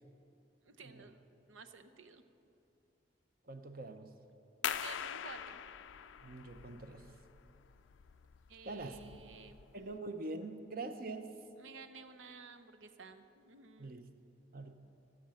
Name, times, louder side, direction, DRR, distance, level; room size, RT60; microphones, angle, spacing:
voice 1, 0.6-2.2 4.6-5.6 8.5-9.6 11.6-14.0, right 5 dB, 85° right, 9 dB, 0.7 m, -53 dB
voice 2, 3.4-4.1 6.2-7.1 8.6-9.0 9.7-11.3 13.8-14.1 14.5-14.7, right 2 dB, 45° right, 8 dB, 0.7 m, -44 dB
sound 1, 4.6-10.0, left 9 dB, 75° left, 0.4 m, -43 dB
17.5 x 7.3 x 6.3 m, 2.7 s
head